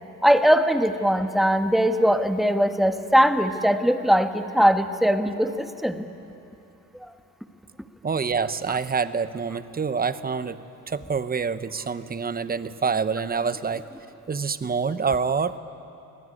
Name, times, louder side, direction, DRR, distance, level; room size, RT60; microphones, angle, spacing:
voice 1, 0.2-6.0, equal, ahead, 7 dB, 1.3 m, -20 dB
voice 2, 8.0-10.6 10.9-13.9 14.3-15.6, right 5 dB, 25° right, 13 dB, 0.9 m, -26 dB
23.5 x 17.5 x 9.8 m, 2.8 s
cardioid pair, 85°, 35 cm